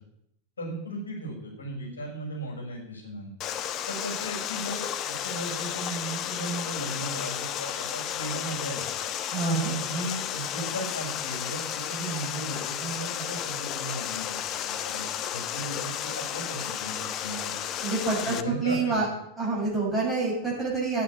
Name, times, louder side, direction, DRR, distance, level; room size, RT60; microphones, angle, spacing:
voice 1, 0.6-3.3 3.9-8.9 9.5-15.0 15.3-17.6 18.3-18.9, right 1 dB, 70° left, -1 dB, 6.5 m, -36 dB
Water, 3.4-18.4, left 10 dB, 35° left, 0.9 m, -33 dB
voice 2, 9.3-9.7 17.8-19.1 19.4-21.0, right 3 dB, 5° right, -6 dB, 6.8 m, -27 dB
9.6 x 9.3 x 9.7 m, 0.78 s
figure-of-eight pair, 90°, 0 cm